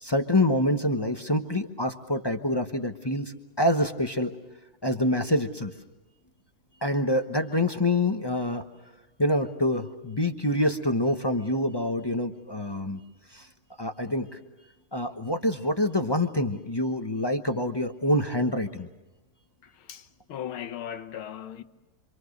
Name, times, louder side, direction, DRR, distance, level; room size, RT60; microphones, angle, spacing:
voice 1, 0.0-4.3 4.8-5.7 6.8-8.6 9.2-13.0 13.3-13.5 13.8-14.4 14.9-18.9, left 1 dB, 25° left, 0.6 m, -26 dB
voice 2, 19.6-21.6, left 10 dB, 80° left, 2.0 m, -38 dB
27.0 x 26.0 x 6.6 m
omnidirectional pair, 2.3 m